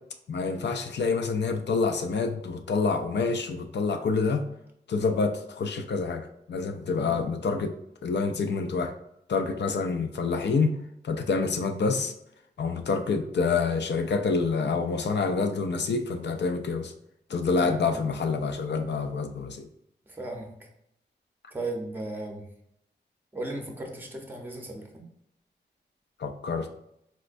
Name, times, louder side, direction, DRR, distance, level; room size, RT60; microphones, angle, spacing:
voice 1, 0.3-4.4 4.9-7.8 8.0-8.9 9.3-10.8 11.0-12.1 12.6-16.9 17.3-19.7 26.2-26.7, left 4 dB, 70° left, 6 dB, 0.4 m, -27 dB
voice 2, 6.9-7.4 17.5-18.0 20.1-20.7 21.5-22.5 23.3-25.1, right 2 dB, 10° right, 2 dB, 0.6 m, -36 dB
4.1 x 2.1 x 2.5 m, 0.75 s
wide cardioid pair, 90°, 19 cm